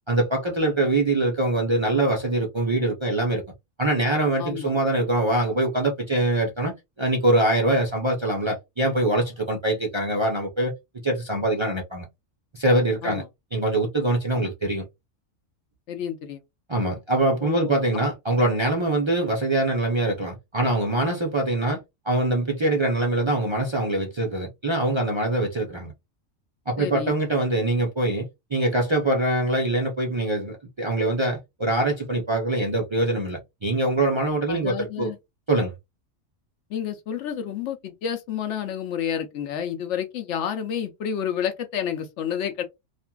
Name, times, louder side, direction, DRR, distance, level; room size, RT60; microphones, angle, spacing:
voice 1, 0.1-3.4 3.8-10.7 11.0-12.1 12.5-13.2 13.5-14.8 16.7-21.8 22.1-25.9 26.7-35.1 35.5-35.7, right 1 dB, 45° right, 0.3 m, -23 dB
voice 2, 4.4-4.7 13.0-13.2 14.3-14.5 15.9-16.4 17.4-17.8 25.8-25.9 26.8-27.1 34.5-35.2 36.7-42.6, left 8 dB, 70° left, 0.9 m, -30 dB
2.8 x 2.5 x 2.2 m
omnidirectional pair, 1.3 m